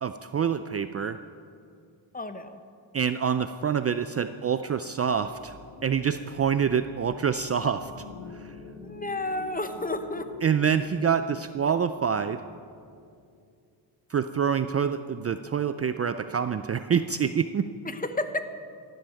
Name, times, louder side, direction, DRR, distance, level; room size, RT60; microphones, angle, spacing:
voice 1, 0.0-1.2 2.9-5.5 5.8-7.9 8.3-8.5 10.4-12.4 14.1-17.7, right 7 dB, 35° right, 10 dB, 0.4 m, -26 dB
voice 2, 2.1-2.6 8.8-10.3 17.8-18.5, left 2 dB, 20° left, 9 dB, 1.0 m, -31 dB
sound 1, 5.1-13.4, left 4 dB, 75° left, 1.8 m, -46 dB
15.5 x 10.5 x 6.4 m, 2.4 s
cardioid pair, 95°, 45 cm